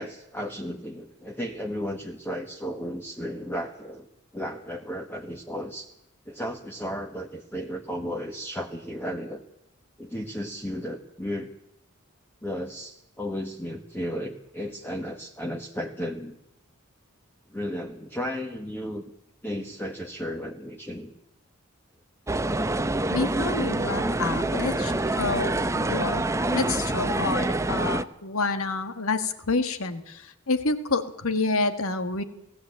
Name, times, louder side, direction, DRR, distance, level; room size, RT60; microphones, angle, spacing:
voice 1, 0.0-4.1 4.3-5.9 6.3-9.4 10.0-11.5 12.4-16.4 17.5-19.0 19.4-21.1, equal, 10° left, 2 dB, 1.3 m, -34 dB
sound 1, 22.3-28.0, right 2 dB, 15° right, 0.7 m, -26 dB
voice 2, 23.1-26.2 26.5-32.2, left 3 dB, 80° left, 9 dB, 1.8 m, -28 dB
19.0 x 15.5 x 8.9 m, 0.84 s
head